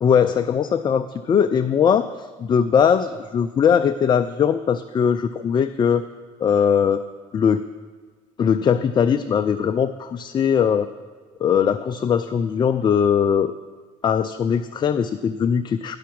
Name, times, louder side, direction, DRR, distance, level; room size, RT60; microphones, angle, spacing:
voice 1, 0.0-6.1 6.4-7.0 7.3-7.6 8.4-10.9 11.4-13.5 14.0-16.0, left 7 dB, 25° left, 9 dB, 0.3 m, -20 dB
10.5 x 5.6 x 6.0 m, 1.4 s
hypercardioid pair, 60°, 17 cm